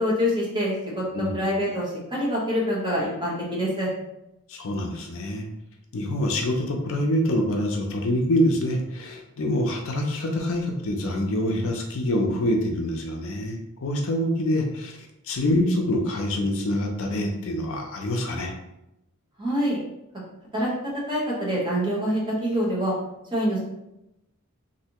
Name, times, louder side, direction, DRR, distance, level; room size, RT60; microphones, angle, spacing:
voice 1, 0.0-1.0 1.3-3.9 19.4-19.8 20.5-20.7 21.1-22.9 23.3-23.6, equal, 20° right, -4 dB, 1.0 m, -25 dB
voice 2, 4.5-5.4 5.9-15.0 15.2-18.5, left 1 dB, 65° left, 2 dB, 0.5 m, -25 dB
3.3 x 2.7 x 2.9 m, 0.87 s
head